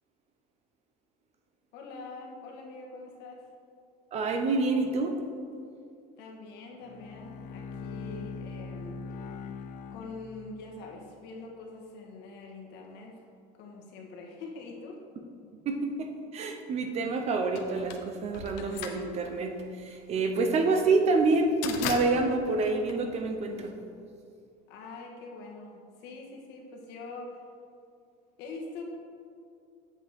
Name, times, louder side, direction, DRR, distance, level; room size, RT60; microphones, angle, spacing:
voice 1, 1.7-3.4 6.2-9.6 9.9-13.2 13.5-15.0 24.7-27.4 28.4-28.8, left 3 dB, 60° left, 0 dB, 1.6 m, -44 dB
voice 2, 4.1-5.1 15.6-23.8, right 3 dB, 35° right, 5 dB, 0.7 m, -27 dB
Bowed string instrument, 6.7-10.8, left 4 dB, 45° left, 0.5 m, -41 dB
sound 1, 17.6-23.7, left 7 dB, 80° left, 0.9 m, -38 dB
8.1 x 8.0 x 3.6 m, 2.4 s
cardioid pair, 155°, 19 cm